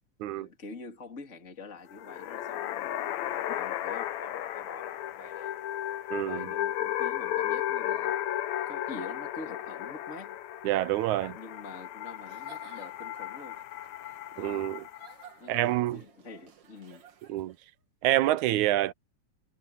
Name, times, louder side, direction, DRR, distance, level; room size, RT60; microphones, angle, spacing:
voice 1, 0.3-5.6 6.2-8.2 8.7-10.4 11.3-13.6 14.3-14.8 15.4-17.1, left 3 dB, 25° left, 2.9 m, -46 dB
sound 1, 1.9-15.3, left 12 dB, 75° left, 2.2 m, -34 dB
voice 2, 6.1-6.5 10.6-11.4 14.4-14.8 15.5-16.0 17.3-17.6 18.0-18.9, right 15 dB, 85° right, 2.1 m, -27 dB
Giggle / Chuckle chortle, 12.2-17.7, right 8 dB, 55° right, 2.6 m, -55 dB
omnidirectional pair, 3.4 m